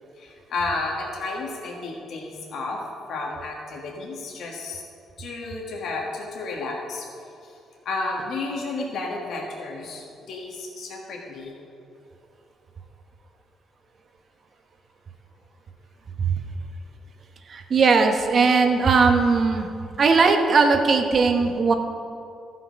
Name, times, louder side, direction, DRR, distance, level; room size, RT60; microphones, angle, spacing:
voice 1, 0.2-2.8 3.1-4.8 5.2-7.1 7.4-7.5 7.8-11.5, left 3 dB, 70° left, -1 dB, 1.5 m, -32 dB
voice 2, 17.5-19.7 20.0-21.7, right 4 dB, 50° right, 5 dB, 1.0 m, -19 dB
13.0 x 5.9 x 5.2 m, 2.5 s
cardioid pair, 90°, 0 cm